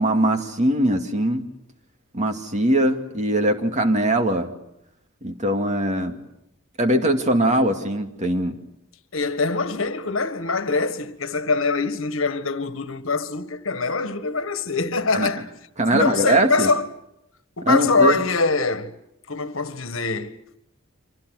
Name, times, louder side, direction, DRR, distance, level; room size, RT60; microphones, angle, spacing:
voice 1, 0.0-1.4 2.1-4.5 5.2-6.2 6.8-8.6 15.1-15.3 15.8-16.7 17.7-18.1, right 1 dB, 35° right, 2.4 m, -21 dB
voice 2, 9.1-15.5 15.9-16.9 17.6-18.9 19.3-20.4, left 4 dB, 70° left, 1.7 m, -23 dB
30.0 x 25.5 x 6.5 m
head